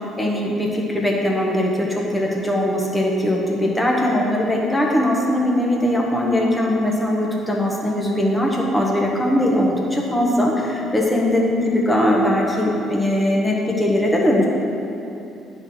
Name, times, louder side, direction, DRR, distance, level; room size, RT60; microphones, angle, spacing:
voice 1, 0.2-14.5, left 1 dB, 5° left, -2 dB, 1.1 m, -20 dB
9.8 x 3.9 x 5.9 m, 2.8 s
cardioid pair, 130°, 0 cm